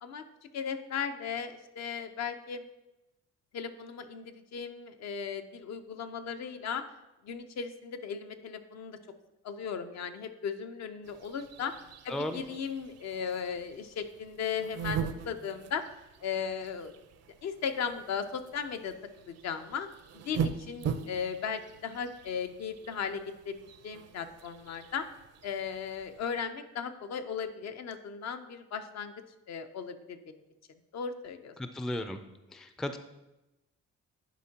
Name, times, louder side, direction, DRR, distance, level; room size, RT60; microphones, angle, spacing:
voice 1, 0.0-2.6 3.5-6.8 7.2-9.0 9.4-11.7 12.0-15.8 16.2-16.9 17.4-19.0 19.3-19.9 20.1-23.6 23.8-25.1 25.4-29.1 29.5-30.3 30.9-31.6, left 6 dB, 60° left, 8 dB, 0.6 m, -36 dB
sound 1, 11.0-26.4, right 7 dB, 55° right, 0.5 m, -41 dB
voice 2, 31.6-32.2 32.5-33.0, left 1 dB, ahead, 8 dB, 0.3 m, -35 dB
10.0 x 4.4 x 2.8 m, 0.97 s
cardioid pair, 90°, 30 cm